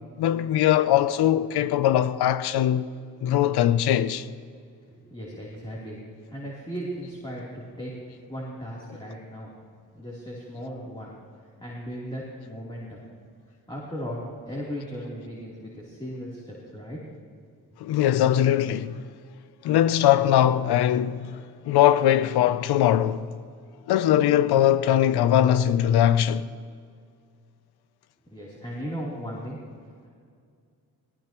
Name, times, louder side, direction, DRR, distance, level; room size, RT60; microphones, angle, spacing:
voice 1, 0.2-2.9 3.2-4.3 17.8-19.0 19.6-21.4 21.7-23.3 23.9-26.5, left 11 dB, 85° left, 0.6 m, -21 dB
voice 2, 4.9-6.0 6.3-7.9 8.3-9.5 9.9-11.1 11.6-13.0 13.7-17.0 28.3-29.6, equal, 15° left, 3.4 m, -36 dB
18.5 x 17.5 x 3.0 m
cardioid pair, 70°, 38 cm